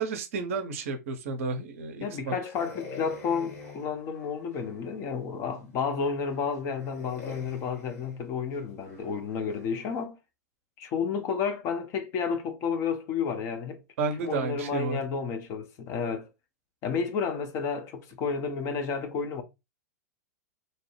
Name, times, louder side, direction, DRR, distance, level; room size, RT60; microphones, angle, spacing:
voice 1, 0.0-2.3 14.0-15.0, right 4 dB, 50° right, 0.5 m, -31 dB
voice 2, 2.0-10.2 10.8-13.8 14.2-16.3 16.8-19.4, left 6 dB, 30° left, 0.5 m, -31 dB
sound 1, 2.5-4.9 5.5-5.6 6.2-10.0, left 4 dB, 55° left, 1.2 m, -46 dB
2.8 x 2.0 x 3.0 m
figure-of-eight pair, 95°, 9 cm